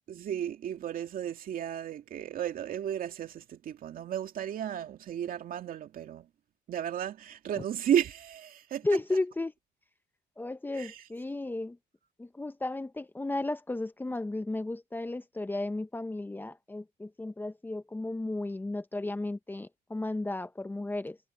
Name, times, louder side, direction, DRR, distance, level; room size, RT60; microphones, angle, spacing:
voice 1, 0.0-6.3 6.7-8.9 10.7-11.0, right 10 dB, 55° right, 2.4 m, -33 dB
voice 2, 8.8-9.5 10.4-11.8 12.2-21.2, left 2 dB, 10° left, 0.9 m, -34 dB
cardioid pair, 110°, 17 cm